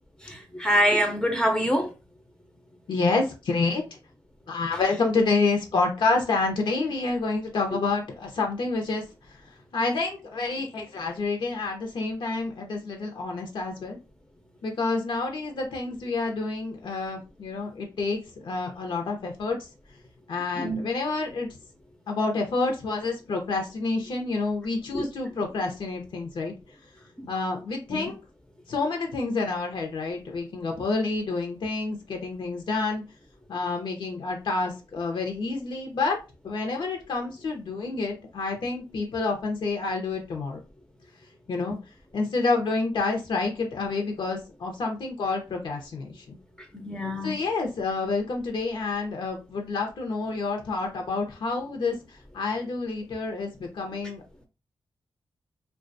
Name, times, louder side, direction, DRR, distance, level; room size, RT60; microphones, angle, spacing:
voice 1, 0.3-1.9 20.6-20.8 46.8-47.3, equal, 10° left, 0.5 m, -24 dB
voice 2, 2.9-3.8 4.5-9.0 9.7-14.0 14.6-19.6 20.3-21.5 22.1-26.5 27.3-28.2 28.7-33.0 33.5-36.2 36.4-40.6 41.5-41.8 42.1-46.4 47.2-52.0 52.3-54.2, left 3 dB, 75° left, 0.6 m, -28 dB
2.3 x 2.2 x 2.5 m
wide cardioid pair, 100°, 8 cm